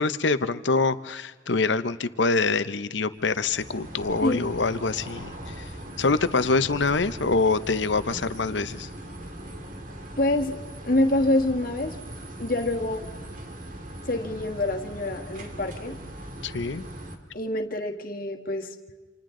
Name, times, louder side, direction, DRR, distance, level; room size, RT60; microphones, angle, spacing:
voice 1, 0.0-5.3 6.0-8.9 16.4-16.8, left 3 dB, 70° left, 12 dB, 0.9 m, -25 dB
sound 1, 3.1-17.2, right 1 dB, 45° right, 2.3 m, -40 dB
sound 2, 4.1-8.4, equal, 65° right, 1.7 m, -49 dB
voice 2, 10.2-10.6 10.8-12.0 12.4-13.0 14.0-15.9 17.3-18.7, left 1 dB, 50° left, 4 dB, 1.7 m, -26 dB
29.0 x 27.0 x 3.9 m, 1.4 s
head